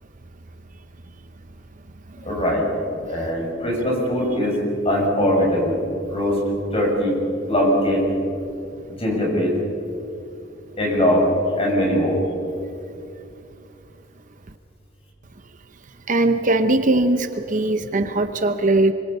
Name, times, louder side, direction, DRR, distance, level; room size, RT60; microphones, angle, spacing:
voice 1, 2.2-2.7 3.1-4.6 4.8-5.8 6.1-6.4 6.7-7.1 7.5-8.0 9.0-9.6 10.8-11.3 11.6-12.2, equal, 30° left, -1 dB, 6.5 m, -21 dB
voice 2, 16.1-18.9, right 2 dB, 40° right, 9 dB, 0.8 m, -20 dB
25.0 x 24.5 x 5.5 m, 2.6 s
head